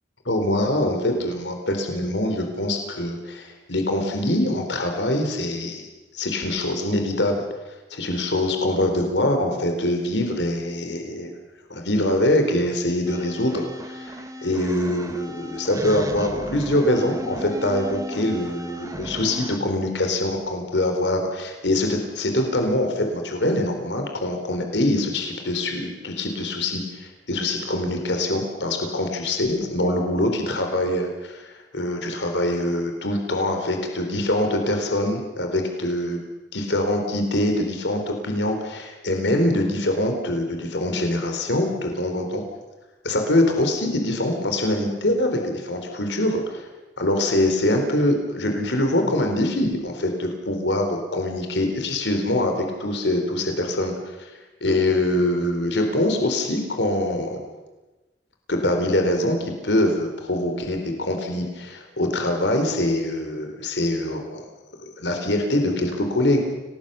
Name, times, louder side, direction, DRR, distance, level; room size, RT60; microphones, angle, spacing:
voice 1, 0.2-5.8 6.1-11.3 11.7-36.2 36.5-42.4 43.0-46.7 47.0-54.3 54.6-57.4 58.5-64.5 64.8-66.4, left 1 dB, 90° left, 4 dB, 4.1 m, -24 dB
sound 1, 13.1-19.6, equal, 20° right, 1.9 m, -35 dB
29.5 x 19.0 x 7.0 m, 1.1 s
head